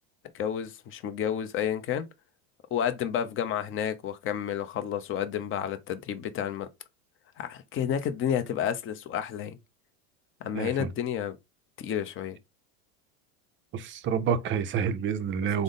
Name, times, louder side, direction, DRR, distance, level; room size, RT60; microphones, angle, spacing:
voice 1, 0.3-2.1 2.7-6.7 7.4-9.6 10.4-11.4 11.8-12.4, left 9 dB, 30° left, 0.6 m, -30 dB
voice 2, 10.5-10.9 13.7-15.6, right 7 dB, 30° right, 0.4 m, -28 dB
3.6 x 2.1 x 3.8 m
supercardioid pair, 110°, 43 cm